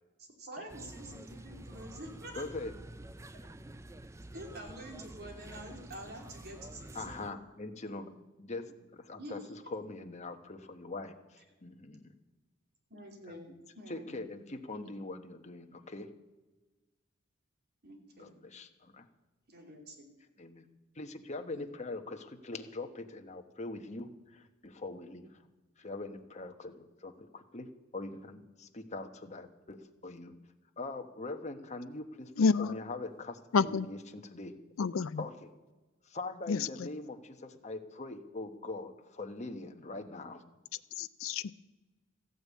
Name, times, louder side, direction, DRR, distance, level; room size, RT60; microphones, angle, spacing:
voice 1, 0.2-2.4 3.3-3.5 4.3-7.2 7.8-8.1 8.6-8.8 9.2-9.4 12.9-14.3 14.7-14.9 17.8-18.3 19.5-20.1 21.5-21.7, right 1 dB, 50° right, 2 dB, 2.9 m, -47 dB
sound 1, 0.7-7.3, right 1 dB, 15° right, 0.4 m, -49 dB
voice 2, 2.3-2.7 6.9-8.1 8.4-12.1 13.3-13.4 13.9-16.1 18.2-19.1 20.4-20.6 20.9-25.3 25.8-30.3 30.8-34.6 35.2-35.5 36.0-40.4, left 2 dB, 35° left, 6 dB, 1.2 m, -42 dB
voice 3, 32.4-32.8 33.5-33.9 34.8-35.2 36.5-36.9 41.0-41.5, left 5 dB, 70° left, 13 dB, 0.4 m, -29 dB
14.5 x 9.1 x 8.4 m, 1.2 s
head